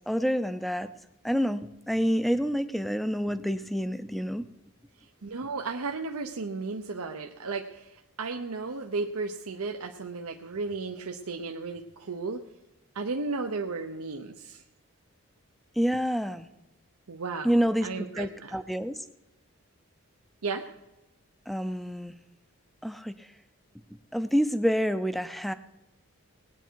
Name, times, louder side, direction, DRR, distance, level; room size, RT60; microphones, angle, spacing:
voice 1, 0.1-0.9 1.2-4.4 15.8-16.5 17.4-19.1 21.5-22.2 22.8-23.3 24.1-25.5, equal, ahead, 11 dB, 0.5 m, -28 dB
voice 2, 5.2-12.4 12.9-14.6 17.1-17.5 17.8-18.6 20.4-20.7, right 4 dB, 85° right, 3 dB, 0.8 m, -34 dB
19.5 x 9.1 x 4.6 m, 0.98 s
head